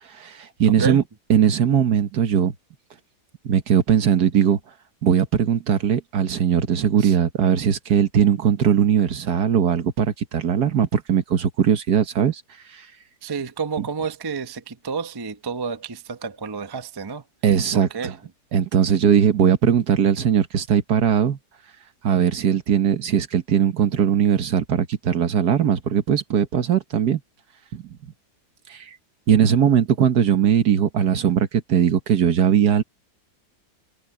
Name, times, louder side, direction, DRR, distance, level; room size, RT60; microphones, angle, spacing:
voice 1, 0.1-1.0 1.3-2.5 3.4-4.6 5.0-12.4 12.7-12.9 13.8-13.9 17.4-18.1 18.5-21.4 22.0-27.2 27.7-28.0 28.7-28.9 29.3-32.8, right 8 dB, 70° right, 1.8 m, -19 dB
voice 2, 0.6-1.0 7.0-7.1 13.2-17.2 17.7-18.1, right 5 dB, 20° right, 0.6 m, -30 dB
omnidirectional pair, 1.8 m